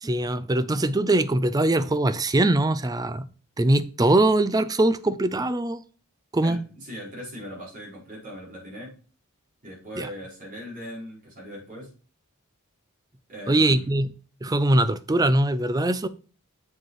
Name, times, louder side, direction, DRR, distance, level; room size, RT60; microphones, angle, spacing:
voice 1, 0.0-3.3 3.6-5.8 6.3-6.6 10.0-10.1 13.5-14.1 14.4-16.1, right 1 dB, 15° right, 0.4 m, -22 dB
voice 2, 6.4-9.0 9.6-11.9 13.3-13.9, equal, 40° right, 4.5 m, -39 dB
7.5 x 5.0 x 4.7 m
head